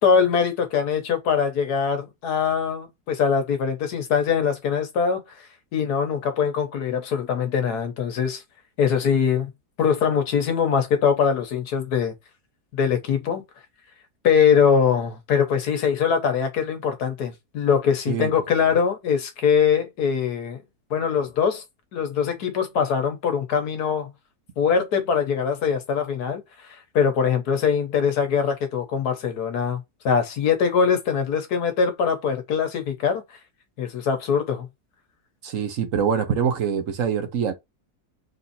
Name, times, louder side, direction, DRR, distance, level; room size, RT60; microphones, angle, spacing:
voice 1, 0.0-5.2 5.7-8.4 8.8-9.5 9.8-12.1 12.7-13.4 14.2-20.6 20.9-21.6 21.9-24.1 24.6-26.4 26.9-33.2 33.8-34.7, left 6 dB, 80° left, 1.5 m, -22 dB
voice 2, 35.4-37.5, right 7 dB, 60° right, 1.1 m, -24 dB
3.9 x 2.7 x 4.0 m
omnidirectional pair, 1.6 m